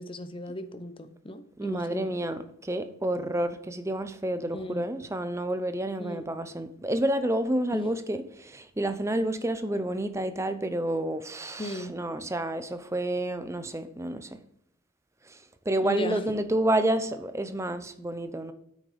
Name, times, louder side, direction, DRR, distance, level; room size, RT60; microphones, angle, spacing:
voice 1, 0.0-2.1 4.5-4.9 6.0-6.2 7.7-7.9 11.6-12.0 15.8-16.2, left 1 dB, 25° left, 10 dB, 0.7 m, -36 dB
voice 2, 1.6-14.4 15.7-18.5, right 1 dB, 15° right, 10 dB, 0.6 m, -29 dB
8.7 x 6.3 x 5.1 m, 0.73 s
head